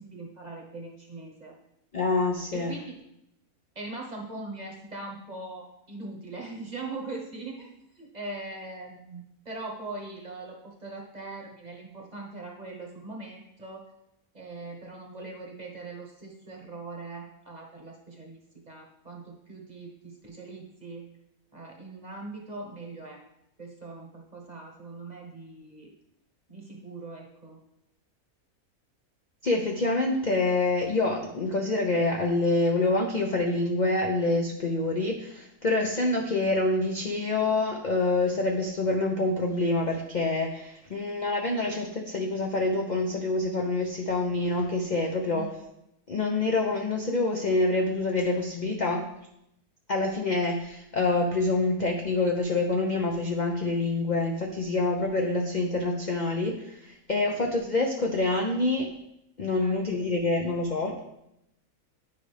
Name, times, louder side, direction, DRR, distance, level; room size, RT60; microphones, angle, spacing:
voice 1, 0.0-1.5 2.5-2.9 3.7-13.8 14.3-18.4 18.7-21.1 21.5-23.2 23.6-25.9 26.5-27.6 45.3-45.5 59.6-59.8, right 2 dB, 30° right, 0 dB, 1.1 m, -41 dB
voice 2, 1.9-2.8 29.4-45.5 46.1-49.0 49.9-58.9 59.4-61.0, left 2 dB, 45° left, 1 dB, 0.6 m, -26 dB
9.5 x 5.1 x 3.3 m, 0.82 s
omnidirectional pair, 1.6 m